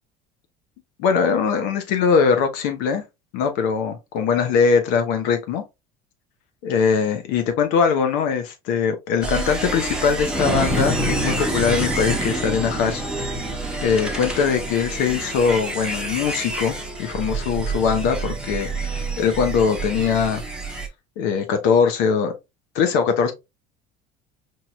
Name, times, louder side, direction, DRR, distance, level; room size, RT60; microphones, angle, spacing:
voice 1, 1.0-3.0 3.3-5.6 6.6-13.3 13.8-20.4 21.2-22.3 22.7-23.3, left 6 dB, 75° left, 1.0 m, -21 dB
sound 1, 9.2-20.9, right 2 dB, 5° right, 0.9 m, -27 dB
4.7 x 2.7 x 2.3 m
supercardioid pair, 95°, 20 cm